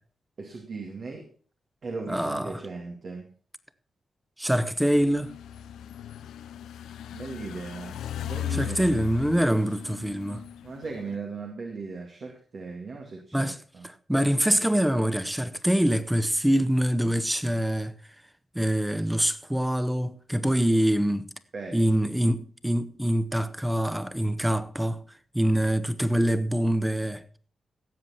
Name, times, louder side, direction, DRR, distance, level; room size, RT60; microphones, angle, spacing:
voice 1, 0.4-1.3 1.8-3.3 7.1-9.0 10.6-13.9 21.5-21.9, right 4 dB, 60° right, 2.3 m, -38 dB
voice 2, 2.1-2.6 4.4-5.3 8.5-10.4 13.3-13.6 13.8-17.9 18.5-21.3 21.7-25.0 25.3-27.2, equal, 5° right, 1.2 m, -25 dB
sound 1, 4.9-11.2, left 11 dB, 90° left, 0.6 m, -38 dB
17.0 x 7.5 x 4.2 m
supercardioid pair, 50°, 0 cm